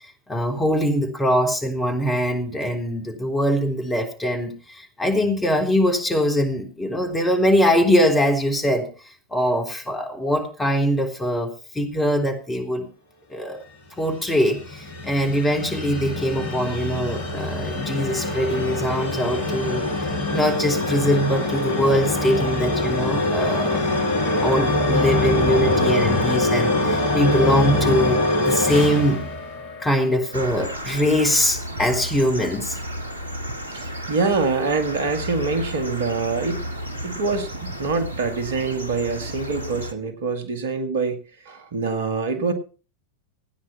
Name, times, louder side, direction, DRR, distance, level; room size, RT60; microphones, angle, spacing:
voice 1, 0.3-8.9 9.3-12.9 13.3-13.6 14.0-19.9 20.3-29.2 29.8-32.8, equal, 15° left, 4 dB, 3.6 m, -22 dB
sound 1, 14.0-30.1, left 2 dB, 50° left, 3.2 m, -23 dB
sound 2, 30.3-39.9, equal, 80° right, 1.3 m, -33 dB
voice 2, 33.7-36.7 37.0-41.2 41.5-42.5, right 4 dB, 60° right, 7 dB, 2.0 m, -25 dB
15.5 x 9.7 x 5.8 m, 0.37 s
figure-of-eight pair, 90°, 0 cm